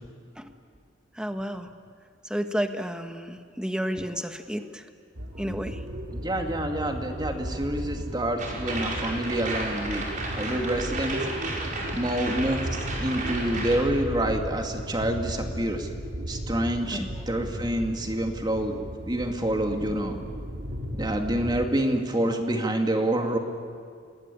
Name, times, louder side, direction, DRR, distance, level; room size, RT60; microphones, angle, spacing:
voice 1, 1.1-1.7 2.2-4.8 5.4-5.8 16.9-17.3, equal, 5° right, 7 dB, 1.4 m, -31 dB
sound 1, 5.1-21.7, equal, 70° right, 3.0 m, -36 dB
voice 2, 6.1-10.0 10.4-11.2 11.9-12.6 13.0-15.9 16.3-20.2 20.9-23.4, right 1 dB, 25° right, 4 dB, 2.3 m, -27 dB
sound 2, 8.4-13.8, right 2 dB, 45° right, 5.8 m, -33 dB
26.5 x 20.5 x 9.9 m, 2.2 s
head